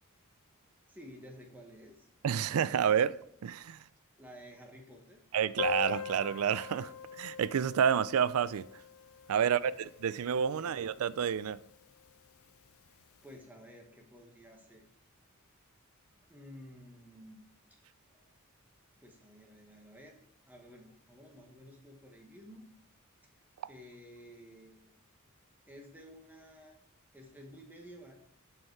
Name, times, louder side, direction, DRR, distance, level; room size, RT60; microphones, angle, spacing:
voice 1, 0.9-2.1 4.2-5.2 9.4-9.7 10.6-10.9 12.9-13.0 13.2-14.9 16.3-17.4 18.1-18.3 19.0-20.2 20.5-22.7 23.6-24.9 25.6-26.8 27.1-28.1, equal, 10° right, 0.9 m, -53 dB
voice 2, 2.2-3.8 5.3-8.6 9.3-11.6, right 8 dB, 80° right, 0.4 m, -29 dB
Piano, 5.6-10.9 11.2-11.3 11.5-11.7 12.0-12.1 12.9-13.0, left 7 dB, 70° left, 0.5 m, -41 dB
9.6 x 4.6 x 4.6 m
head